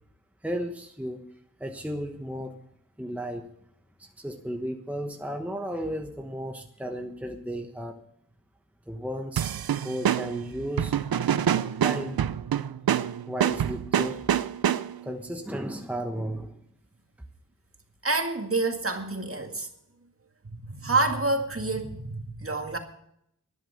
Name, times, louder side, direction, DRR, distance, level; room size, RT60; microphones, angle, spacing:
voice 1, 0.4-1.3 1.6-2.6 3.0-3.5 4.0-8.0 8.9-9.5 9.8-11.0 11.8-12.2 13.3-14.2 15.0-16.6, equal, 5° right, 4 dB, 1.1 m, -34 dB
sound 1, 9.4-15.1, right 9 dB, 85° right, 0.6 m, -26 dB
voice 2, 18.0-19.7 20.5-22.8, right 3 dB, 40° right, 4 dB, 2.1 m, -28 dB
11.5 x 10.0 x 6.8 m, 0.73 s
wide cardioid pair, 60°, 35 cm